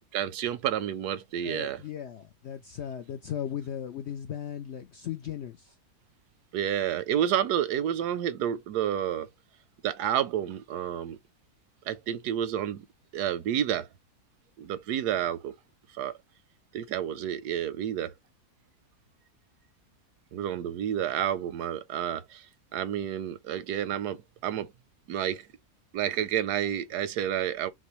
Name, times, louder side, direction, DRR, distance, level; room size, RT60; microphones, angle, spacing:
voice 1, 0.1-1.8 6.5-9.3 9.8-11.2 11.9-12.9 13.1-13.9 14.6-15.5 16.0-16.1 16.7-18.1 20.3-22.5 22.7-24.7 25.1-25.5 25.9-27.7, right 10 dB, 85° right, 1.2 m, -30 dB
voice 2, 1.4-5.8, left 9 dB, 70° left, 0.6 m, -37 dB
6.0 x 2.2 x 3.1 m
omnidirectional pair, 1.7 m